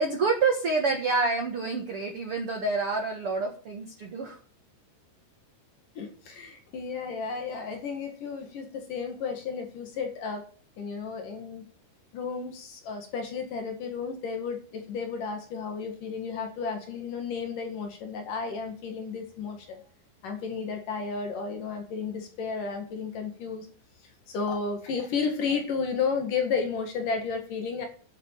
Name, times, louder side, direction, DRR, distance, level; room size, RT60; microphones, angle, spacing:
voice 1, 0.0-4.4, right 4 dB, 65° right, 3 dB, 1.4 m, -27 dB
voice 2, 6.0-10.5 10.8-11.6 12.1-19.8 20.2-23.7 24.3-27.9, left 5 dB, 55° left, 4 dB, 3.0 m, -32 dB
10.5 x 7.5 x 7.3 m, 0.42 s
omnidirectional pair, 5.1 m